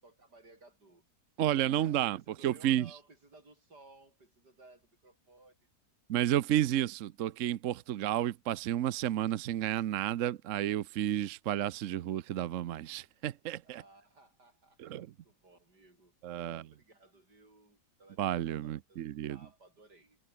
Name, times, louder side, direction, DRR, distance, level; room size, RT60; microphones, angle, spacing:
voice 1, 0.0-1.0 1.5-5.6 13.6-20.2, right 2 dB, 85° right, 6.8 m, -59 dB
voice 2, 1.4-2.9 6.1-13.8 14.8-15.1 16.2-16.6 18.2-19.4, right 12 dB, 60° right, 0.9 m, -31 dB
omnidirectional pair, 1.7 m